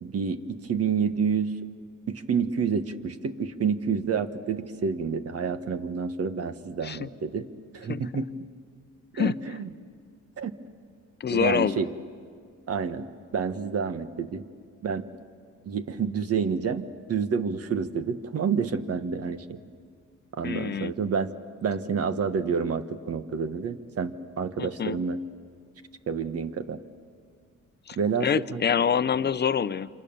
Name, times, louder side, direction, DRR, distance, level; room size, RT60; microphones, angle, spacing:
voice 1, 0.0-1.5 2.1-7.5 7.7-8.3 9.2-9.7 10.4-10.5 11.3-11.9 12.7-13.0 13.3-14.4 14.8-15.0 15.6-19.6 20.3-21.3 21.6-25.2 26.1-26.8 27.9-28.6, right 6 dB, 50° right, 10 dB, 1.5 m, -29 dB
voice 2, 7.9-8.2 9.1-9.3 11.2-11.8 20.4-20.9 24.6-25.0 27.9-29.9, left 7 dB, 35° left, 13 dB, 0.8 m, -26 dB
28.0 x 25.5 x 7.1 m, 2.1 s
cardioid pair, 90°, 30 cm